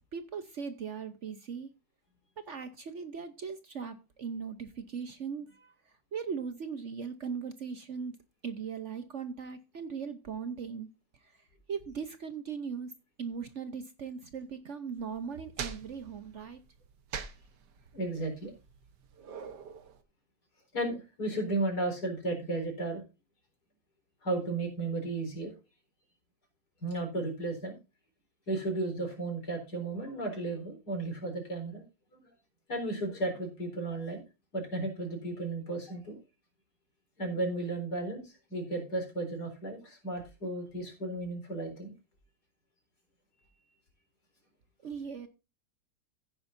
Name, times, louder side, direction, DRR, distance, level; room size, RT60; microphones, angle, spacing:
voice 1, 0.1-1.7 2.4-5.7 6.1-8.2 8.4-10.9 11.7-12.9 13.2-16.6 44.8-45.3, right 6 dB, 50° right, 1.0 m, -39 dB
sound 1, 15.0-20.0, right 6 dB, 80° right, 1.7 m, -44 dB
voice 2, 17.9-18.5 20.7-23.0 24.2-25.5 26.8-27.8 28.5-31.8 32.1-32.2 32.7-34.2 34.5-36.2 37.2-41.9, right 2 dB, 70° left, 4.7 m, -34 dB
16.0 x 8.8 x 2.6 m
omnidirectional pair, 1.8 m